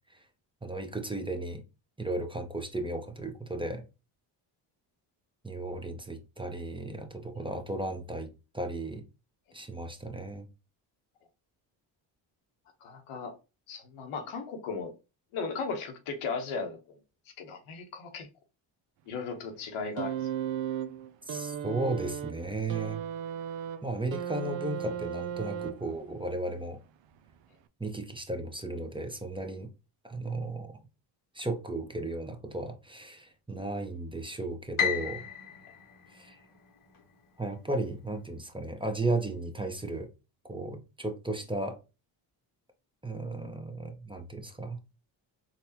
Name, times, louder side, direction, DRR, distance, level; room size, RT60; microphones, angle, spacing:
voice 1, 0.6-1.6 2.0-3.8 5.4-9.0 9.5-10.5 21.3-23.0 23.8-26.8 27.8-29.7 30.0-30.8 31.3-35.2 36.1-36.4 37.4-40.1 40.5-41.8 43.0-44.8, right 2 dB, 10° right, 0.8 m, -35 dB
voice 2, 12.8-13.3 13.7-14.9 15.3-17.0 17.4-18.3 19.1-20.2, left 4 dB, 85° left, 1.0 m, -36 dB
sound 1, 20.0-26.1 27.2-27.3, right 9 dB, 65° right, 0.6 m, -36 dB
Piano, 34.8-37.0, left 8 dB, 40° left, 0.9 m, -33 dB
4.0 x 2.3 x 2.7 m
supercardioid pair, 65°, 49 cm